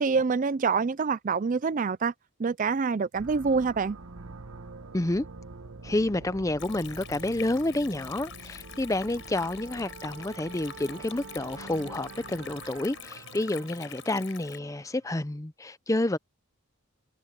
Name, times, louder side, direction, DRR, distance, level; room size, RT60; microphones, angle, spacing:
voice 1, 0.0-2.1 2.4-4.0, right 5 dB, 35° right, 0.4 m, -26 dB
sound 1, 3.1-15.1, right 3 dB, 85° right, 1.2 m, -46 dB
voice 2, 4.9-5.3 5.8-16.2, left 1 dB, 15° left, 0.6 m, -29 dB
Stream, 6.6-14.6, left 10 dB, 60° left, 6.7 m, -46 dB
Wind instrument woodwind instrument, 8.6-13.0, right 6 dB, 55° right, 3.7 m, -49 dB
head